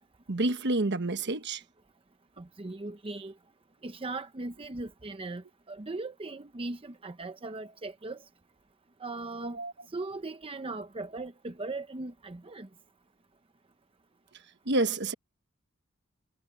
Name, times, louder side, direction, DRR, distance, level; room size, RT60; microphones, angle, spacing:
voice 1, 0.3-1.6 9.6-9.7 14.7-15.1, right 2 dB, 55° right, 1.3 m, -28 dB
voice 2, 2.4-3.3 3.8-8.2 9.0-9.6 9.9-12.7, right 2 dB, 25° right, 0.7 m, -38 dB
head